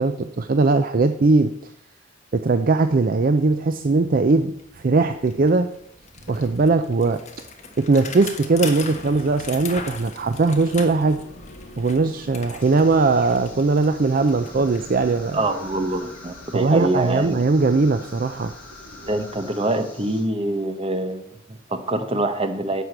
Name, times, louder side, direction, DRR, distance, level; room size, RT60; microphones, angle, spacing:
voice 1, 0.0-1.5 2.3-5.7 6.3-7.2 7.8-11.2 11.8-15.4 16.5-18.5, right 3 dB, 45° right, 9 dB, 0.5 m, -20 dB
Bicycle, 3.8-3.9 4.2-17.1, left 4 dB, 35° left, 1.3 m, -40 dB
sound 1, 10.2-19.4, left 1 dB, 65° left, 2.1 m, -45 dB
sound 2, 12.6-20.2, left 2 dB, 5° left, 3.5 m, -46 dB
voice 2, 15.3-17.4 19.1-22.8, right 1 dB, 30° right, 8 dB, 1.1 m, -25 dB
10.5 x 5.0 x 7.9 m, 0.73 s
head